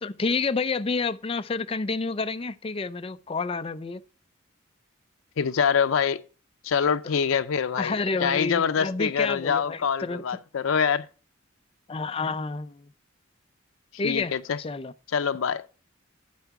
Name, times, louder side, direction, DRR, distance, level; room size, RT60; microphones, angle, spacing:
voice 1, 0.0-4.0 7.8-10.2 11.9-12.9 14.0-14.9, left 4 dB, 30° left, 0.4 m, -29 dB
voice 2, 5.4-6.2 6.6-7.9 8.2-11.1 14.0-14.6 15.1-15.6, left 6 dB, 85° left, 0.5 m, -25 dB
11.5 x 4.6 x 5.8 m
head